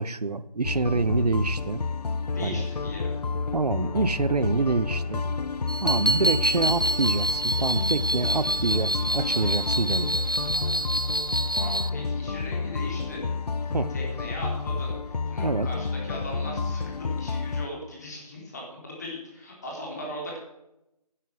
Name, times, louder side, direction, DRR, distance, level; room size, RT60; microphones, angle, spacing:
voice 1, 0.0-1.8 2.4-2.6 3.5-5.2 5.8-10.2 13.7-13.9 15.4-15.7, right 3 dB, 75° right, 16 dB, 0.9 m, -26 dB
sound 1, 0.6-17.7, left 4 dB, 75° left, 0.6 m, -30 dB
voice 2, 2.3-3.1 6.1-6.3 11.6-13.2 13.6-20.4, left 1 dB, 25° left, -2 dB, 3.9 m, -39 dB
sound 2, 5.7-11.9, right 1 dB, 35° right, 0.5 m, -27 dB
11.0 x 11.0 x 6.3 m, 0.89 s
figure-of-eight pair, 170°, 21 cm